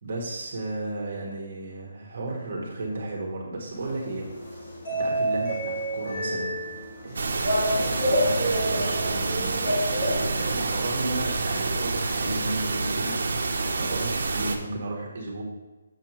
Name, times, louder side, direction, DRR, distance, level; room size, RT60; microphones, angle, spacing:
voice 1, 0.0-4.3 4.9-6.6 7.0-15.4, right 2 dB, 45° right, -2 dB, 1.4 m, -34 dB
sound 1, 3.7-10.7, equal, 45° left, 2.2 m, -28 dB
sound 2, 7.1-14.6, right 3 dB, 60° right, 0.8 m, -28 dB
7.3 x 6.5 x 3.0 m, 1.1 s
hypercardioid pair, 170°, 0 cm